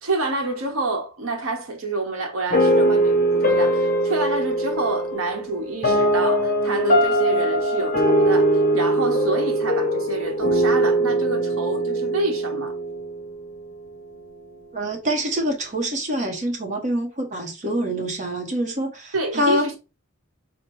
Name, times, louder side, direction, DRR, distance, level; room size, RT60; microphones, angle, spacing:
voice 1, 0.0-12.8 19.1-19.8, right 2 dB, 85° right, 1.0 m, -27 dB
sound 1, 2.5-13.6, right 1 dB, 40° left, 0.9 m, -21 dB
voice 2, 14.7-19.7, equal, 35° right, 0.9 m, -25 dB
4.5 x 2.1 x 4.5 m
head